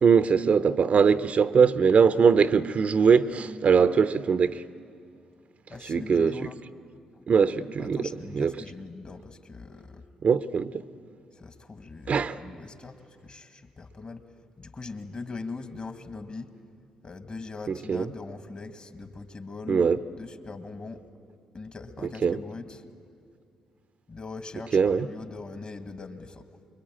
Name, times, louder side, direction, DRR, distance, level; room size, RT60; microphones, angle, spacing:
voice 1, 0.0-4.6 5.8-6.5 7.3-8.0 8.3-8.5 10.2-10.7 12.1-12.4 17.7-18.1 19.7-20.0 22.2-22.4 24.7-25.1, right 6 dB, 50° right, 0.7 m, -21 dB
voice 2, 5.7-6.6 7.1-7.2 7.8-10.0 11.3-14.2 14.6-16.5 17.0-21.0 21.5-22.9 24.1-26.5, left 3 dB, 40° left, 2.1 m, -41 dB
25.0 x 22.5 x 8.9 m
hypercardioid pair, 45°, 3 cm